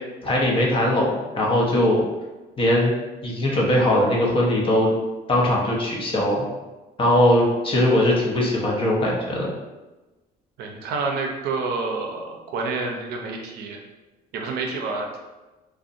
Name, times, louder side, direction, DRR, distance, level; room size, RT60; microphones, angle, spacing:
voice 1, 0.2-2.0 2.6-2.9 3.2-4.9 5.3-6.5 7.0-9.5, left 1 dB, 30° left, -3 dB, 0.6 m, -20 dB
voice 2, 10.6-13.8 14.3-15.2, right 3 dB, 75° right, 1 dB, 0.5 m, -28 dB
2.7 x 2.1 x 2.5 m, 1.1 s
cardioid pair, 110°, 17 cm